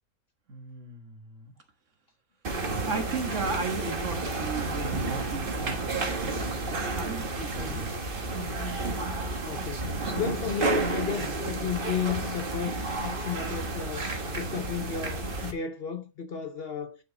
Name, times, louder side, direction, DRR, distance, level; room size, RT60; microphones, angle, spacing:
voice 1, 0.5-1.5 2.7-8.2, right 4 dB, 60° right, 1.7 m, -36 dB
sound 1, 2.4-15.5, right 3 dB, 40° right, 1.3 m, -31 dB
voice 2, 7.5-7.9 9.5-17.0, left 7 dB, 50° left, 0.8 m, -33 dB
8.8 x 6.2 x 3.8 m
omnidirectional pair, 1.5 m